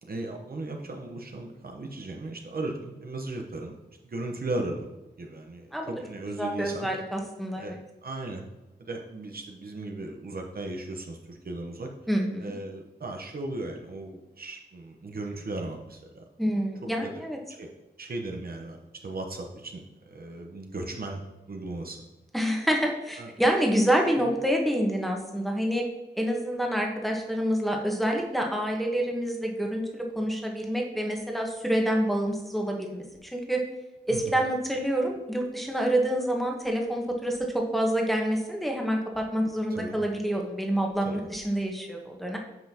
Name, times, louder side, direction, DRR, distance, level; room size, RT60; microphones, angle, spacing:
voice 1, 0.0-3.8 4.0-4.9 5.2-6.9 7.6-7.7 8.0-8.4 8.8-11.9 12.4-16.5 17.0-17.1 17.6-17.7 18.0-21.2 21.5-22.0 23.2-23.3 34.1-34.3 39.7-40.0 41.0-41.2, right 2 dB, 60° right, 2 dB, 1.0 m, -36 dB
voice 2, 6.4-7.8 12.1-12.6 16.4-17.4 22.3-25.8 26.2-33.6 34.1-42.4, equal, ahead, 0 dB, 1.3 m, -27 dB
9.1 x 5.5 x 2.9 m, 1.1 s
wide cardioid pair, 80°, 17 cm